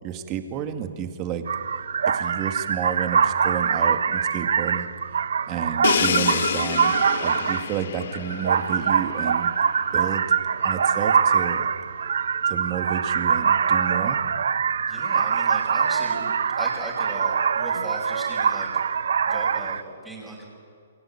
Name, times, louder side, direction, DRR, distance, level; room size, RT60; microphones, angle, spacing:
voice 1, 0.0-1.4 2.0-4.9 5.5-9.5 9.9-10.2 10.6-11.7 12.5-14.2, right 9 dB, 25° right, 7 dB, 2.2 m, -31 dB
sound 1, 1.5-19.8, right 7 dB, 75° right, 1.0 m, -23 dB
Crash cymbal, 5.8-9.6, left 8 dB, 60° left, 1.3 m, -28 dB
voice 2, 14.9-18.7 19.3-20.4, right 1 dB, 5° right, -4 dB, 5.4 m, -37 dB
28.5 x 22.5 x 8.8 m, 2.3 s
hypercardioid pair, 150°, 0 cm